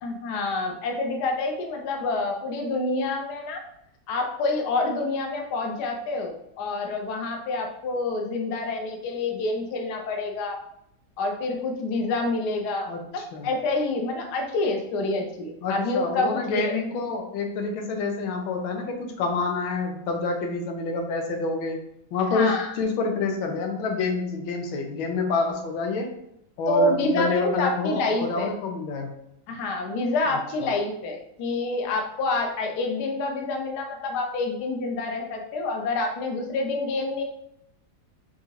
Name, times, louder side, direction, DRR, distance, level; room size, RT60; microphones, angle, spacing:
voice 1, 0.0-3.6 4.1-10.6 11.2-16.8 22.3-22.7 26.7-28.5 29.5-37.2, left 2 dB, 65° left, 2 dB, 1.2 m, -27 dB
voice 2, 12.9-13.5 15.6-21.8 22.1-26.2 26.6-29.1 30.3-30.7, left 3 dB, 90° left, 3 dB, 1.6 m, -28 dB
5.7 x 2.5 x 2.8 m, 0.77 s
omnidirectional pair, 2.1 m